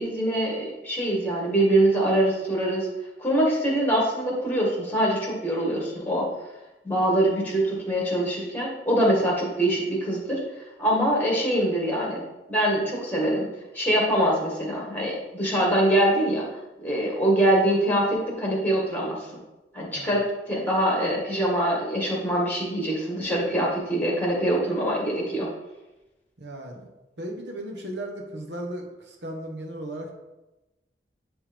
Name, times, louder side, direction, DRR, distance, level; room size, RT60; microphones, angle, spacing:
voice 1, 0.0-2.9 3.2-6.3 6.8-10.4 10.8-12.2 12.5-13.5 13.7-16.5 16.8-19.3 19.7-25.5, right 1 dB, 10° left, -2 dB, 1.8 m, -24 dB
voice 2, 26.4-26.9 27.2-30.1, right 1 dB, 75° right, 1 dB, 1.2 m, -36 dB
10.5 x 3.5 x 3.5 m, 1.0 s
head